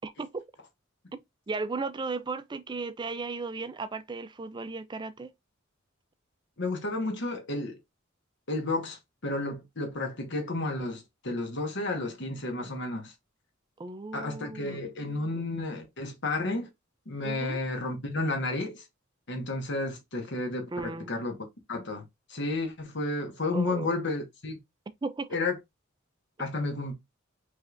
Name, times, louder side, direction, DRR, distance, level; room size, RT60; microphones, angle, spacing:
voice 1, 0.0-0.4 1.5-5.3 13.8-14.8 17.2-17.6 20.7-21.1 23.5-24.0 25.0-25.4, right 3 dB, 20° right, 0.4 m, -35 dB
voice 2, 6.6-7.8 8.5-13.1 14.1-16.7 17.1-18.8 19.3-21.4 21.7-22.0 22.3-24.6 25.3-25.5 26.4-26.9, left 2 dB, 60° left, 1.4 m, -32 dB
5.2 x 3.2 x 2.5 m
head